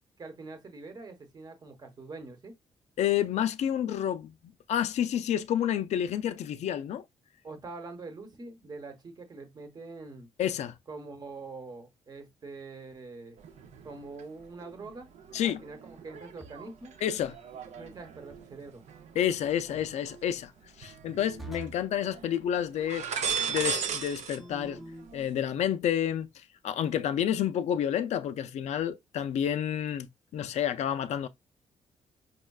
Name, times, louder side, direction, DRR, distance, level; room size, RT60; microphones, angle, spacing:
voice 1, 0.2-2.5 7.4-10.3 10.9-13.4 13.8-15.1 15.4-16.9 17.8-18.8, right 3 dB, 35° right, 1.0 m, -44 dB
voice 2, 3.0-4.3 4.7-7.0 10.4-10.7 15.3-15.6 17.0-17.3 19.2-20.5 20.8-23.1 23.5-24.8 25.1-31.3, left 10 dB, 65° left, 0.4 m, -29 dB
sound 1, 13.4-14.2 14.6-20.2 20.8-21.7 22.0-22.3 22.7-24.4 24.6-25.3, right 6 dB, 70° right, 0.6 m, -37 dB
sound 2, 16.4-16.9 19.4-19.9 21.4-21.9 24.4-25.1, right 2 dB, ahead, 0.6 m, -45 dB
5.3 x 2.1 x 2.3 m
cardioid pair, 110°, 12 cm